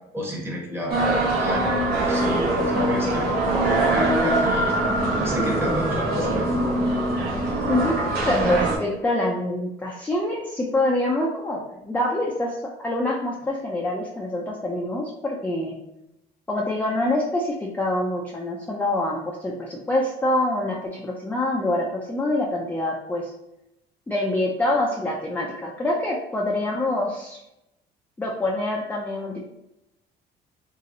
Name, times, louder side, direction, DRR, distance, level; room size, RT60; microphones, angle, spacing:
voice 1, 0.1-4.7 5.2-6.5, equal, 15° right, -2 dB, 0.9 m, -30 dB
sound 1, 0.9-8.8, right 1 dB, 65° right, 0.9 m, -23 dB
voice 2, 7.6-12.6 12.8-15.8 16.5-23.3 24.1-27.4 28.2-29.4, left 1 dB, 10° left, -3 dB, 0.4 m, -25 dB
3.0 x 2.8 x 2.6 m, 0.86 s
cardioid pair, 110°, 17 cm